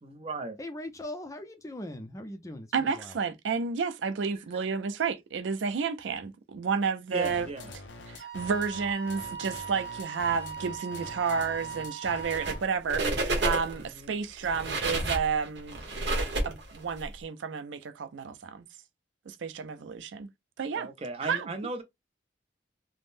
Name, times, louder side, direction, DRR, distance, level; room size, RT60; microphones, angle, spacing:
voice 1, 0.0-0.6 7.1-7.7 13.8-14.1 20.7-21.8, right 2 dB, 35° right, 0.6 m, -36 dB
voice 2, 0.6-3.2, left 1 dB, 20° left, 0.5 m, -40 dB
voice 3, 2.7-7.5 8.1-15.8 16.4-18.7 19.3-20.3 20.6-20.9 21.2-21.5, right 5 dB, 85° right, 0.4 m, -31 dB
sound 1, 7.2-12.8, left 2 dB, 85° left, 0.6 m, -45 dB
Wind instrument woodwind instrument, 8.2-12.6, right 7 dB, 55° right, 1.2 m, -40 dB
sound 2, 12.2-12.6 12.9-13.8 14.4-17.0, right 2 dB, 70° right, 1.1 m, -30 dB
3.5 x 2.0 x 2.5 m
head